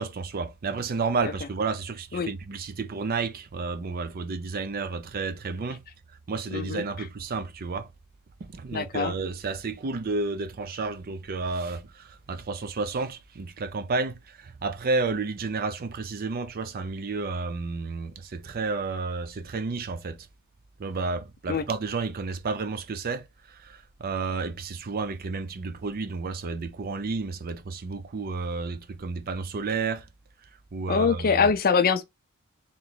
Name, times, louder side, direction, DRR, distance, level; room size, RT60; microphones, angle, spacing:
voice 1, 0.0-5.8 6.3-7.9 8.4-20.3 20.8-30.1 30.7-31.5, right 4 dB, 40° right, 0.5 m, -31 dB
voice 2, 6.5-6.8 8.7-9.1 21.5-21.6 30.9-32.0, left 5 dB, 40° left, 0.5 m, -23 dB
3.2 x 3.0 x 3.8 m
head